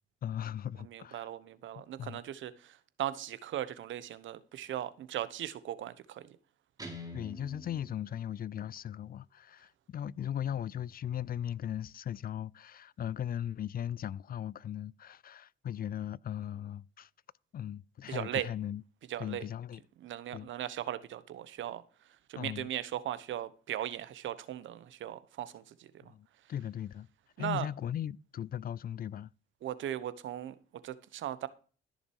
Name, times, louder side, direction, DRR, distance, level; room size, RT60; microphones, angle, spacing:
voice 1, 0.2-1.3 2.0-2.2 7.1-17.1 17.5-18.8 19.2-19.8 20.3-20.5 22.4-22.7 26.1-27.1 27.4-29.3, left 10 dB, 50° left, 0.5 m, -38 dB
voice 2, 0.9-6.4 18.1-18.5 19.1-19.5 20.0-21.8 22.3-25.9 27.4-27.7 29.6-30.5 30.8-31.5, right 11 dB, 75° right, 1.2 m, -38 dB
Guitar, 6.8-8.8, left 1 dB, 20° right, 3.6 m, -47 dB
14.5 x 6.5 x 4.7 m
cardioid pair, 90°, 20 cm